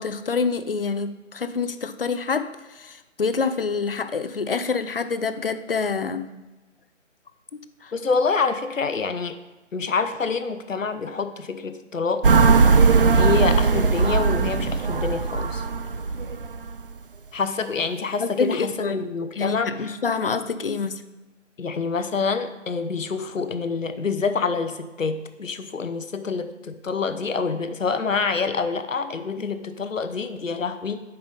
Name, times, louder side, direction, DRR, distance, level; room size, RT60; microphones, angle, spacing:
voice 1, 0.0-6.3 7.5-7.9 18.2-19.0 19.3-20.9, left 5 dB, 50° left, 12 dB, 0.5 m, -27 dB
voice 2, 7.9-9.4 9.7-12.3 13.0-15.6 17.3-20.0 21.6-31.0, left 5 dB, 85° left, 10 dB, 0.9 m, -26 dB
sound 1, 12.2-16.8, right 4 dB, 45° right, 0.4 m, -19 dB
8.7 x 5.6 x 4.0 m, 1.1 s
figure-of-eight pair, 155°, 38 cm